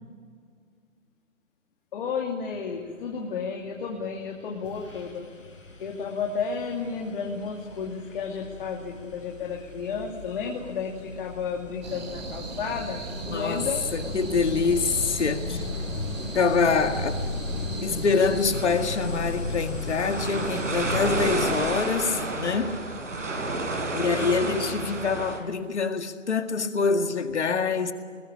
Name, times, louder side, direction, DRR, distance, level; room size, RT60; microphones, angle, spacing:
voice 1, 1.9-5.2 5.8-13.9 23.9-24.9, left 5 dB, 40° left, 2.7 m, -32 dB
sound 1, 4.1-4.3 4.6-21.9, left 3 dB, 80° left, 5.3 m, -36 dB
sound 2, 11.8-18.6, right 4 dB, 35° right, 4.3 m, -38 dB
voice 2, 13.3-15.7 16.3-17.2 17.8-22.8 23.9-27.9, left 5 dB, 60° left, 2.1 m, -25 dB
sound 3, 18.5-25.4, right 2 dB, 70° right, 5.6 m, -31 dB
21.0 x 20.0 x 8.6 m
figure-of-eight pair, 135°, 39 cm